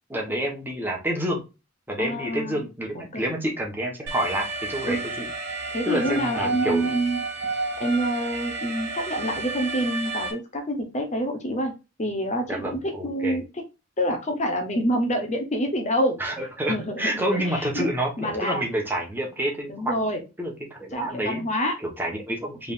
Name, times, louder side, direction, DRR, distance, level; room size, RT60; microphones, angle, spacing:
voice 1, 0.1-1.4 1.9-5.2 5.8-6.8 12.5-13.4 16.2-20.0 20.4-21.4 21.8-22.7, right 1 dB, 10° right, 0 dB, 1.3 m, -28 dB
voice 2, 2.0-2.7 2.9-3.3 4.8-5.0 5.7-7.2 7.8-11.7 12.0-13.4 14.0-16.2 16.7-17.9 18.2-18.6 19.7-20.2 20.9-21.7, equal, 35° left, 4 dB, 0.9 m, -27 dB
Alarm, 4.1-10.3, right 3 dB, 55° right, 1.3 m, -31 dB
5.0 x 3.5 x 2.5 m, 0.28 s
head